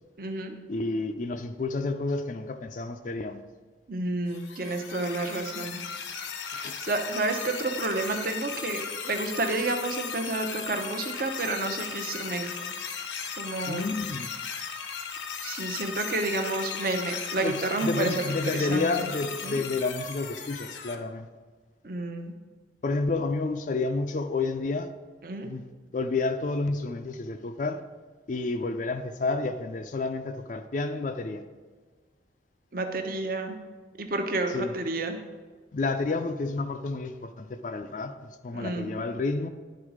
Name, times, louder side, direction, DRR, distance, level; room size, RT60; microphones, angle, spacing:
voice 1, 0.2-0.6 3.9-5.9 6.5-12.7 13.4-13.9 15.4-19.1 19.4-19.6 21.8-22.3 25.2-25.6 32.7-33.6 34.0-35.2 38.5-39.0, right 2 dB, 50° right, 0.8 m, -30 dB
voice 2, 0.7-3.4 6.6-6.8 13.7-14.3 17.4-21.3 22.8-24.9 25.4-25.6 25.9-27.8 28.3-31.4 34.5-34.7 35.7-39.5, left 3 dB, 45° left, 0.4 m, -30 dB
sound 1, 4.3-21.0, left 6 dB, 80° left, 0.7 m, -36 dB
10.5 x 4.0 x 4.9 m
head